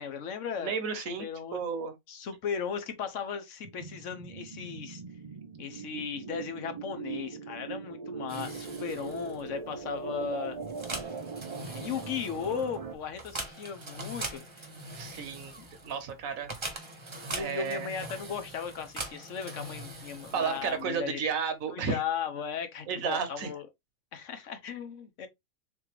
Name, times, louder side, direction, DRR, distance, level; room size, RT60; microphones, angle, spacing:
voice 1, 0.0-0.7 1.2-1.6 2.1-5.0 5.6-10.6 11.7-14.7 15.6-15.7 17.3-21.2 21.7-23.7 24.1-25.3, left 7 dB, 65° left, 1.1 m, -36 dB
voice 2, 0.6-1.9 14.9-15.5 15.8-16.6 17.3-17.9 20.3-22.0 22.9-23.5, right 6 dB, 80° right, 1.3 m, -32 dB
sound 1, 3.6-13.0, right 5 dB, 55° right, 0.4 m, -40 dB
sound 2, 8.3-21.0, right 2 dB, 25° right, 0.8 m, -42 dB
3.8 x 3.3 x 2.9 m
omnidirectional pair, 1.4 m